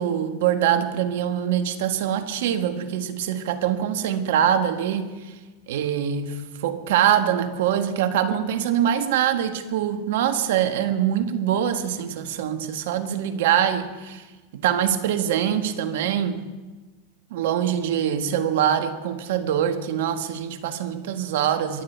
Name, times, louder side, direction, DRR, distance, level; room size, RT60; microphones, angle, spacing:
voice 1, 0.0-5.3 5.7-14.2 14.5-16.4 17.3-21.8, right 9 dB, 70° right, 9 dB, 1.4 m, -24 dB
23.0 x 9.8 x 4.5 m, 1.2 s
hypercardioid pair, 105°, 0 cm